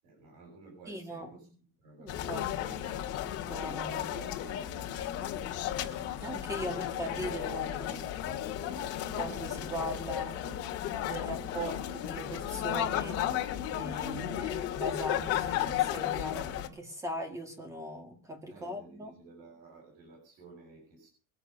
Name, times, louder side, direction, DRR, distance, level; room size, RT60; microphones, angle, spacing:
voice 1, 0.0-1.5 1.8-3.2 3.5-5.1 6.6-7.9 8.7-10.0 18.5-21.1, right 3 dB, 50° right, 1 dB, 7.2 m, -53 dB
voice 2, 0.9-1.6 2.0-2.8 3.5-4.5 6.2-8.0 9.2-10.4 11.0-13.2 13.7-19.1, equal, 5° right, 5 dB, 2.1 m, -39 dB
sound 1, 2.1-16.7, left 11 dB, 35° left, 2.2 m, -34 dB
24.0 x 8.0 x 5.5 m, 0.41 s
cardioid pair, 175°, 42 cm